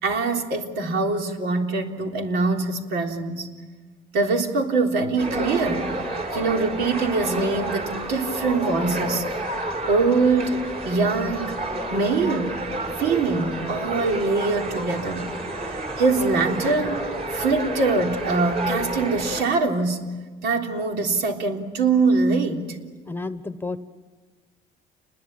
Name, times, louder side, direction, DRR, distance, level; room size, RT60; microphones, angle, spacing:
voice 1, 0.0-3.5 4.1-6.0 6.3-11.6 11.9-12.6 13.0-15.3 16.0-20.1 20.4-22.8, right 3 dB, 80° right, 3 dB, 3.5 m, -23 dB
sound 1, 5.2-19.4, right 1 dB, 40° right, 5.7 m, -30 dB
voice 2, 23.0-23.8, left 3 dB, 10° left, 12 dB, 1.2 m, -31 dB
29.5 x 21.0 x 8.9 m, 1.4 s
cardioid pair, 110°, 17 cm